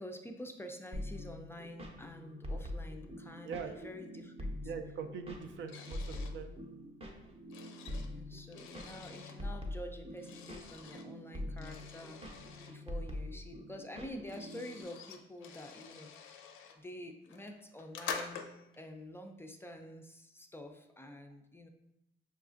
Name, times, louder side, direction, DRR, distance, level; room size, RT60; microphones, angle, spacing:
voice 1, 0.0-4.6 5.8-6.3 8.0-16.4 16.7-18.5 18.8-21.7, left 1 dB, 10° left, 4 dB, 0.3 m, -48 dB
sound 1, 0.9-14.8, left 1 dB, 30° right, 0.6 m, -44 dB
voice 2, 3.4-3.9 4.6-6.5, right 6 dB, 70° right, 7 dB, 0.4 m, -42 dB
sound 2, 5.7-6.4 7.1-9.4 10.2-11.1 11.6-12.7 13.7-13.8 14.0-16.8 17.2-18.8, left 6 dB, 80° left, 0.5 m, -47 dB
5.5 x 2.3 x 2.5 m, 0.86 s
cardioid pair, 90°, 20 cm